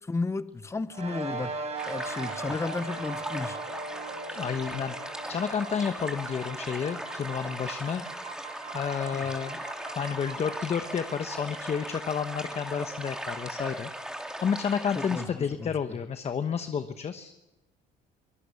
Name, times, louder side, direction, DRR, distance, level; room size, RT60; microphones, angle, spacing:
voice 1, 0.0-1.5 1.9-3.6 9.1-9.2 14.9-16.0, left 3 dB, 15° left, 14 dB, 0.8 m, -33 dB
sound 1, 0.9-13.7, right 3 dB, 40° right, 4.9 m, -41 dB
sound 2, 1.8-15.2, right 1 dB, 5° right, 3.0 m, -38 dB
sound 3, 3.1-14.5, right 8 dB, 60° right, 6.5 m, -49 dB
voice 2, 4.3-4.9 5.3-8.0 8.7-9.6 10.0-13.9 14.2-17.3, left 7 dB, 40° left, 9 dB, 1.1 m, -31 dB
23.5 x 18.0 x 7.0 m, 0.97 s
cardioid pair, 110°, 17 cm